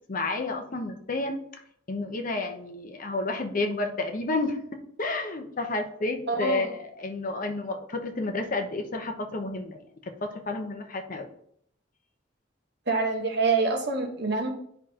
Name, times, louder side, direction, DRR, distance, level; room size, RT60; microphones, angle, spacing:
voice 1, 0.1-1.4 1.9-9.8 10.2-11.3, left 2 dB, 45° left, 4 dB, 0.9 m, -31 dB
voice 2, 6.3-6.7 12.9-14.5, right 4 dB, 60° right, 2 dB, 1.2 m, -26 dB
9.4 x 4.9 x 2.9 m, 0.68 s
head